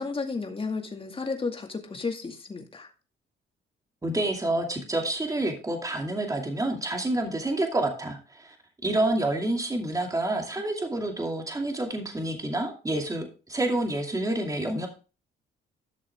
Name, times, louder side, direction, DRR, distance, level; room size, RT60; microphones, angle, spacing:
voice 1, 0.0-2.9, left 4 dB, 25° left, 4 dB, 2.2 m, -33 dB
voice 2, 4.0-8.6 8.8-14.9, right 1 dB, 15° right, 2 dB, 2.5 m, -28 dB
12.5 x 6.4 x 3.6 m, 0.34 s
cardioid pair, 90°, 20 cm